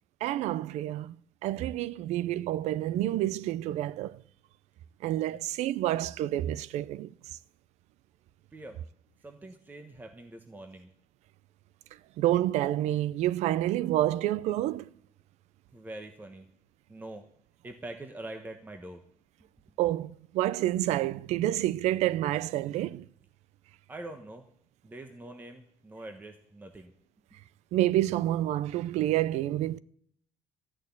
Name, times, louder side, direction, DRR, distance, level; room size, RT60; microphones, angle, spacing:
voice 1, 0.2-1.1 1.4-4.2 5.0-7.1 12.2-14.9 19.8-23.1 27.7-29.8, right 14 dB, 75° right, 0.5 m, -28 dB
voice 2, 9.2-10.9 15.7-16.5 16.9-17.3 17.6-19.0 23.9-24.5 24.8-26.9 27.3-27.4, right 2 dB, 15° right, 1.1 m, -44 dB
13.5 x 6.5 x 9.6 m
cardioid pair, 130°, 12 cm